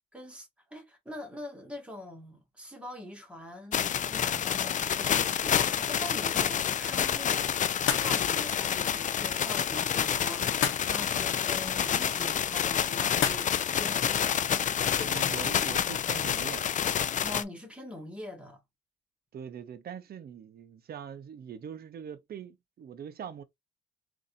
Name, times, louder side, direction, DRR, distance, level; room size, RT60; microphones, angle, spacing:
voice 1, 0.1-7.5 7.9-13.5 13.8-14.3 14.8-15.4 17.2-18.6, left 1 dB, 5° right, 1.7 m, -43 dB
sound 1, 3.7-17.4, left 9 dB, 40° left, 0.4 m, -28 dB
sound 2, 7.7-16.1, left 8 dB, 75° left, 0.9 m, -38 dB
voice 2, 14.9-16.7 19.3-23.4, right 8 dB, 50° right, 0.7 m, -42 dB
3.9 x 2.7 x 2.5 m
cardioid pair, 90°, 20 cm